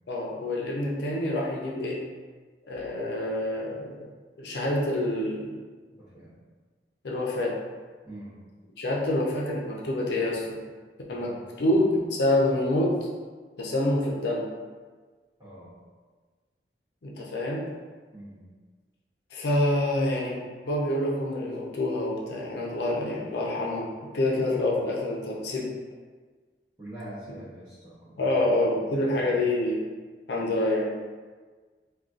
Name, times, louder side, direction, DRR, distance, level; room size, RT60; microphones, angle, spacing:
voice 1, 0.1-2.0 2.7-3.9 4.4-5.5 7.0-7.5 8.8-10.4 11.1-11.3 11.6-12.9 13.6-14.4 17.0-17.6 19.3-23.9 24.1-25.7 28.2-29.8 30.3-30.9, left 1 dB, 70° left, -3 dB, 0.5 m, -27 dB
voice 2, 6.0-6.4 8.0-8.4 11.2-11.5 15.4-15.7 18.1-18.4 26.8-29.2, right 1 dB, 20° right, -13 dB, 0.7 m, -45 dB
3.7 x 2.3 x 2.4 m, 1.4 s
head